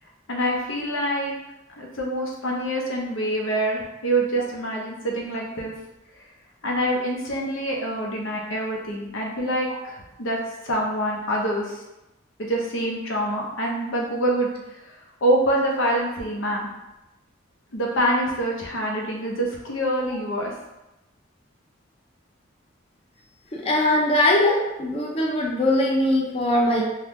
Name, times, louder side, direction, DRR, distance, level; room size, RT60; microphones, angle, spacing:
voice 1, 0.3-1.3 1.8-5.7 6.6-10.4 10.6-11.8 12.4-14.9 15.2-16.7 17.7-20.5, right 1 dB, 85° left, -2 dB, 0.7 m, -25 dB
voice 2, 23.5-26.8, left 1 dB, 30° left, -2 dB, 0.5 m, -21 dB
2.9 x 2.3 x 3.5 m, 0.94 s
head